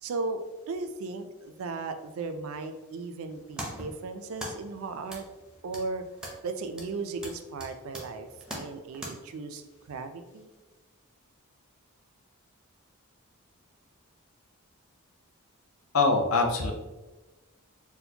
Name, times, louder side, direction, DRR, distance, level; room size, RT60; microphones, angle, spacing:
voice 1, 0.0-5.3 5.6-6.0 6.4-8.3 8.5-9.6 9.9-10.5, right 3 dB, 65° right, 8 dB, 0.3 m, -36 dB
sound 1, 3.2-9.1, right 1 dB, 5° right, 0.5 m, -43 dB
voice 2, 15.9-16.7, left 3 dB, 70° left, 3 dB, 0.5 m, -23 dB
4.2 x 2.1 x 2.7 m, 1.1 s
head